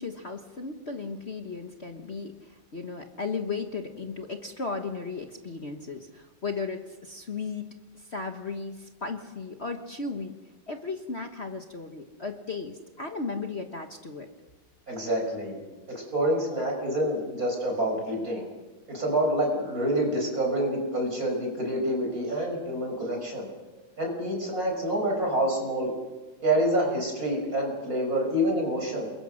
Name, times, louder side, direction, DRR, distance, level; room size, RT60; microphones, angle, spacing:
voice 1, 0.0-7.6 7.9-10.4 10.7-14.3, left 4 dB, 35° left, 5 dB, 1.3 m, -35 dB
voice 2, 14.9-15.6 15.9-18.5 18.9-23.5 24.0-25.9 26.4-29.1, right 1 dB, 40° right, 1 dB, 6.4 m, -27 dB
28.5 x 22.0 x 6.4 m, 1.2 s
omnidirectional pair, 2.3 m